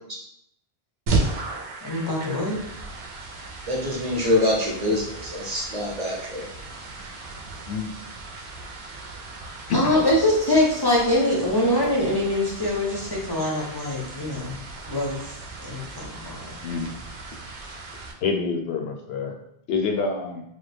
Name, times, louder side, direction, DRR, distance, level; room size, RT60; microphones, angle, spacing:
sound 1, 1.1-18.1, right 3 dB, 80° right, 0.8 m, -35 dB
voice 1, 1.8-2.6 9.7-14.6 14.9-15.4 15.6-16.5, left 1 dB, 35° left, -4 dB, 0.4 m, -23 dB
voice 2, 3.7-6.5, left 1 dB, 45° right, -3 dB, 0.7 m, -25 dB
voice 3, 16.6-16.9 18.2-19.3 19.7-20.4, left 4 dB, 75° left, 2 dB, 0.8 m, -27 dB
3.3 x 2.2 x 3.3 m, 0.78 s
omnidirectional pair, 1.1 m